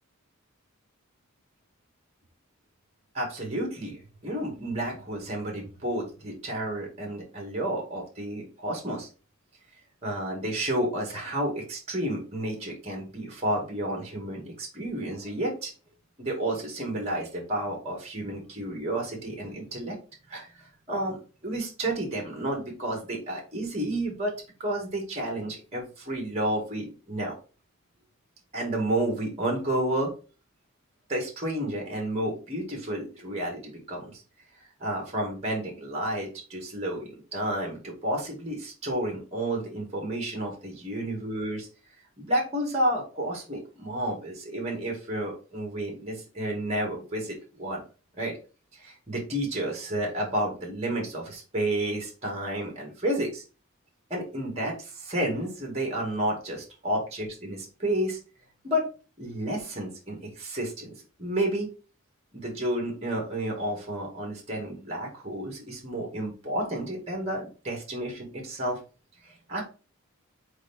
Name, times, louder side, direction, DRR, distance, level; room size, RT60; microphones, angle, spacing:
voice 1, 3.1-9.1 10.0-15.7 16.2-20.0 20.3-24.3 24.6-27.4 28.5-30.1 31.1-34.2 34.8-41.7 42.2-47.8 48.2-48.4 48.7-53.4 54.1-58.2 58.6-58.9 59.2-61.7 62.3-68.8 69.2-69.6, right 1 dB, 30° right, 0 dB, 2.2 m, -31 dB
5.0 x 4.5 x 4.3 m, 0.34 s
head